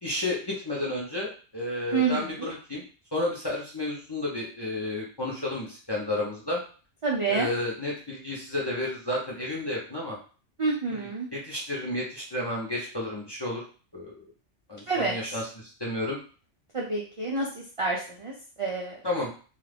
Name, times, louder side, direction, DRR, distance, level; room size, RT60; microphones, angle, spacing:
voice 1, 0.0-2.8 3.1-6.6 7.3-10.2 10.9-13.6 13.9-14.3 14.7-16.2 19.0-19.3, left 1 dB, 30° left, -5 dB, 0.5 m, -32 dB
voice 2, 1.9-2.5 7.0-7.5 10.6-11.3 14.9-15.4 16.7-18.9, right 4 dB, 55° right, -2 dB, 0.3 m, -28 dB
2.3 x 2.3 x 3.3 m, 0.39 s
omnidirectional pair, 1.2 m